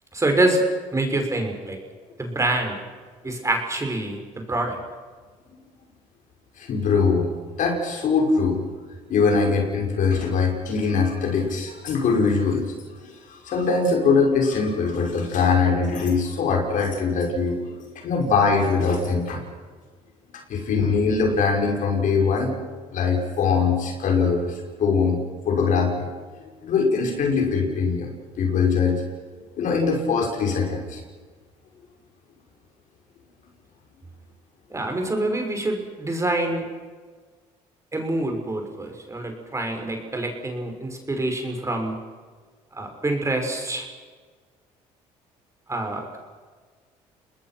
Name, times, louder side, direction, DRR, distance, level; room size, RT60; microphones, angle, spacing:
voice 1, 0.1-0.6 0.9-1.8 2.2-2.8 3.2-4.8 34.7-36.7 37.9-42.0 42.7-43.9 45.7-46.2, right 2 dB, 20° right, 3 dB, 6.1 m, -26 dB
voice 2, 6.6-7.3 7.6-8.6 9.1-12.7 13.3-17.6 18.0-19.4 20.5-22.5 22.9-25.2 25.5-26.1 26.6-28.1 28.4-29.0 29.6-31.0, left 4 dB, 65° left, 1 dB, 5.9 m, -22 dB
28.5 x 20.5 x 6.1 m, 1.5 s
supercardioid pair, 75°, 15 cm